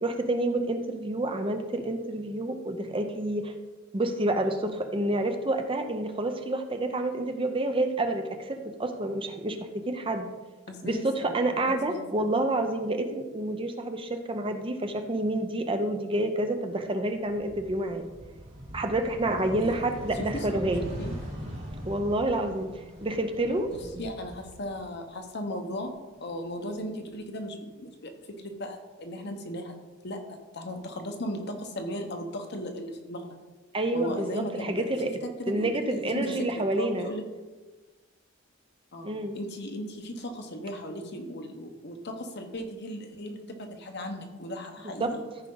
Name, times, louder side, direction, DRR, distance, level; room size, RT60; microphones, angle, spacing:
voice 1, 0.0-3.5 3.9-10.3 10.8-18.1 18.7-20.9 21.8-22.7 23.0-23.7 23.9-24.0 33.7-35.1 35.5-37.1 39.0-39.3 45.0-45.1, right 1 dB, 25° right, 6 dB, 0.7 m, -28 dB
voice 2, 10.7-11.4 11.7-12.3 19.5-19.9 20.2-21.2 23.7-29.8 30.0-33.4 33.9-34.9 35.4-36.5 36.8-37.3 38.9-45.2, equal, 55° left, 4 dB, 1.1 m, -37 dB
sound 1, 17.1-25.3 25.6-26.8, equal, 75° right, 2.8 m, -41 dB
14.0 x 4.9 x 3.9 m, 1.2 s
head